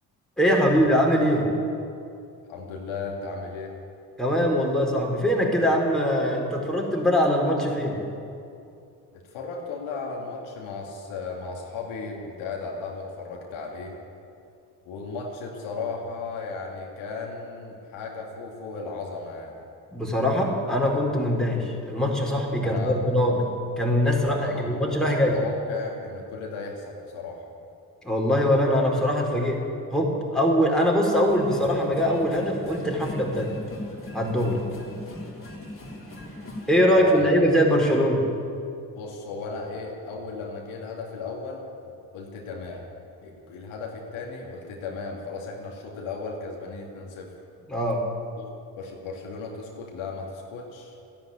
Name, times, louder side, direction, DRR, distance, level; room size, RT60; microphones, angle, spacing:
voice 1, 0.4-1.5 4.2-8.0 19.9-23.4 23.8-25.4 28.0-29.7 29.9-33.6 34.1-34.6 36.7-38.3 47.7-48.1, equal, ahead, -2 dB, 4.5 m, -22 dB
voice 2, 2.5-3.8 9.2-14.0 14.9-19.6 22.6-23.0 24.4-27.5 36.9-37.4 39.0-41.7 42.1-42.9 43.2-47.3 48.4-48.5 48.8-51.0, left 4 dB, 70° left, 0 dB, 2.4 m, -35 dB
sound 1, 31.3-36.8, left 1 dB, 25° left, 3.4 m, -39 dB
13.5 x 10.5 x 9.1 m, 2.5 s
hypercardioid pair, 45°, 50 cm